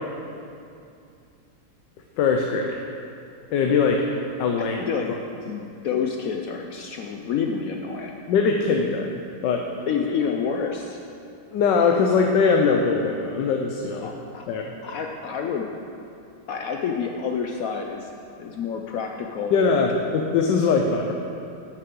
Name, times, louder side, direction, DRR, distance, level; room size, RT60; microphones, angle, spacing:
voice 1, 2.2-2.8 3.5-4.1 4.4-4.9 8.3-9.7 11.5-14.1 14.5-14.7 19.5-21.1, left 5 dB, 85° left, 2 dB, 1.3 m, -21 dB
voice 2, 4.9-5.2 5.5-8.2 9.9-11.0 14.0-14.4 14.8-15.7 16.5-18.1 18.4-19.8, left 6 dB, 70° left, 2 dB, 0.8 m, -28 dB
12.5 x 6.7 x 3.7 m, 2.5 s
omnidirectional pair, 1.9 m